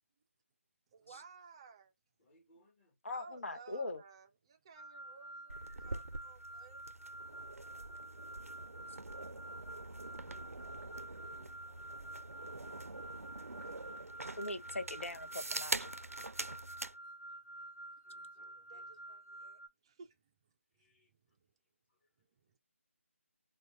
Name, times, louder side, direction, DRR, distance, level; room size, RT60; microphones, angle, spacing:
voice 1, 0.9-1.9 3.1-6.8 10.1-10.3 18.5-20.2, right 5 dB, 20° right, 0.4 m, -57 dB
voice 2, 2.2-2.9 9.5-11.9 13.3-13.5 15.3-15.6 18.0-18.9 20.7-21.4 21.9-22.1, left 2 dB, 30° left, 2.4 m, -71 dB
voice 3, 3.0-4.0 8.9-9.0 14.4-15.9, left 2 dB, 65° left, 0.7 m, -41 dB
sound 1, 4.7-19.7, right 2 dB, 10° left, 2.2 m, -50 dB
sound 2, 5.5-17.0, right 2 dB, 85° right, 0.4 m, -44 dB
4.1 x 2.2 x 3.5 m
figure-of-eight pair, 155°, 8 cm